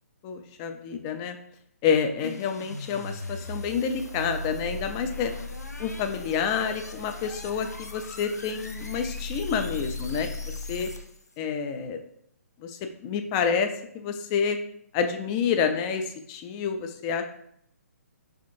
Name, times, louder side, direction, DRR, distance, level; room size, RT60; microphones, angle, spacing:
voice 1, 0.2-1.4 1.8-5.3 5.8-10.9 11.4-12.0 12.6-14.6 14.9-17.2, left 6 dB, 20° left, 7 dB, 0.3 m, -28 dB
sound 1, 2.2-11.3, left 2 dB, 85° left, 0.5 m, -37 dB
4.4 x 3.5 x 2.5 m, 0.69 s
figure-of-eight pair, 130°, 8 cm